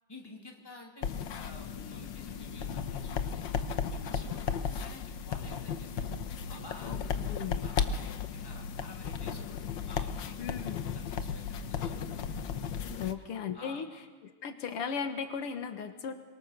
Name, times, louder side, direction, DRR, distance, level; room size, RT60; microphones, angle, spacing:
voice 1, 0.1-3.5 3.9-6.1 6.5-7.0 7.6-10.7 10.9-12.1 13.0-13.1 13.5-13.8, left 2 dB, 10° left, 0 dB, 2.9 m, -51 dB
sound 1, 1.0-13.1, left 6 dB, 65° left, 1.6 m, -35 dB
voice 2, 7.3-7.7 10.4-10.8 13.0-13.9 14.2-16.1, left 6 dB, 85° left, 7 dB, 2.4 m, -36 dB
24.5 x 23.0 x 6.7 m, 1.3 s
omnidirectional pair, 2.4 m